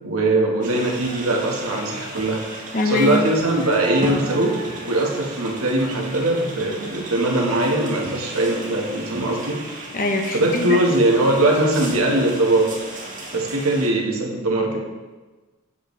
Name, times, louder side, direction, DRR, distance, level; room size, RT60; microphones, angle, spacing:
voice 1, 0.0-2.4 2.8-9.6 10.3-12.7 13.3-14.8, right 1 dB, 75° right, 0 dB, 1.4 m, -21 dB
sound 1, 0.6-13.9, right 2 dB, 40° right, 1.7 m, -35 dB
voice 2, 2.7-3.1 9.9-10.8, left 2 dB, 40° left, 3 dB, 0.9 m, -23 dB
8.1 x 7.8 x 3.2 m, 1.3 s
head